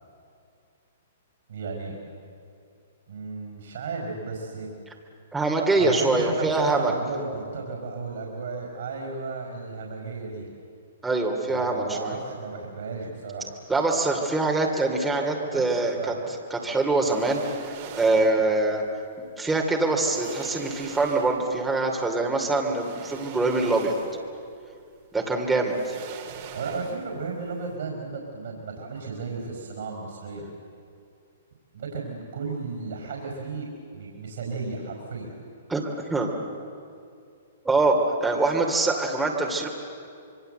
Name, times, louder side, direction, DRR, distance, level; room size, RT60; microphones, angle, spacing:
voice 1, 1.5-2.0 3.1-4.7 5.8-10.5 11.5-13.5 15.5-15.7 16.0-16.3 26.5-30.5 31.7-35.3, right 4 dB, 70° right, 0 dB, 5.1 m, -34 dB
voice 2, 5.3-6.9 11.0-12.2 13.7-17.4 18.0-18.8 19.4-23.9 25.1-26.0 35.7-36.3 37.6-39.7, right 2 dB, 10° right, 0 dB, 2.9 m, -24 dB
sound 1, 16.9-18.4 19.5-19.6 20.0-21.6 22.6-24.4 24.7-24.8 25.6-27.3 27.5-27.7, right 8 dB, 45° right, 3.1 m, -42 dB
26.0 x 22.5 x 8.0 m, 2.4 s
hypercardioid pair, 130°, 0 cm